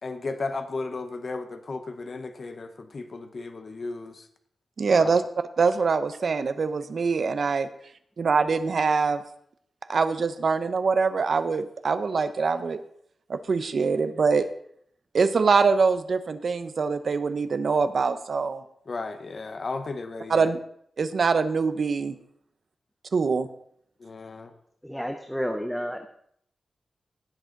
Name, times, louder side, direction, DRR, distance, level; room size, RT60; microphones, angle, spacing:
voice 1, 0.0-4.3 5.0-5.1 18.9-20.5 24.0-24.5, left 3 dB, 40° left, 8 dB, 0.8 m, -34 dB
voice 2, 4.8-5.2 5.6-7.7 8.2-9.2 9.9-12.8 13.3-14.4 15.1-18.6 20.3-20.6 21.0-22.1 23.1-23.5, right 5 dB, 55° right, 11 dB, 0.8 m, -24 dB
voice 3, 24.8-26.1, equal, 5° left, 5 dB, 0.7 m, -30 dB
17.5 x 7.7 x 3.9 m, 0.68 s
wide cardioid pair, 160°, 0 cm